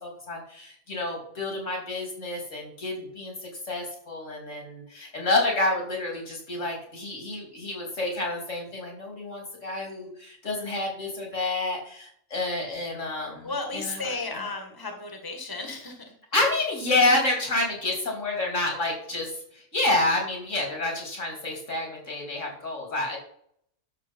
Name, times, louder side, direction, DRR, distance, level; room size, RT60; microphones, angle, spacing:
voice 1, 0.0-14.1 16.3-23.2, left 2 dB, 75° left, 0 dB, 3.4 m, -29 dB
voice 2, 13.4-16.1, left 3 dB, 15° left, 4 dB, 1.7 m, -34 dB
11.5 x 7.0 x 4.5 m, 0.65 s
omnidirectional pair, 1.3 m